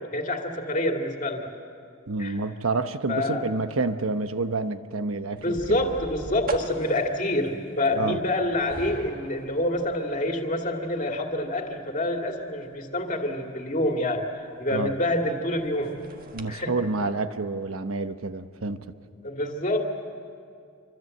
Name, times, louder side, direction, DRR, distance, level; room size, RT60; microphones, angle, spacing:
voice 1, 0.0-1.5 2.2-2.3 3.1-3.4 5.4-14.2 14.6-15.9 16.5-16.7 19.2-19.9, left 1 dB, 35° left, 2 dB, 2.3 m, -27 dB
voice 2, 2.1-5.9 7.9-8.2 14.7-14.9 16.3-18.8, right 3 dB, 85° right, 10 dB, 1.1 m, -28 dB
sound 1, 5.4-16.5, right 2 dB, 45° right, 1.6 m, -43 dB
26.0 x 25.0 x 7.9 m, 2.4 s
head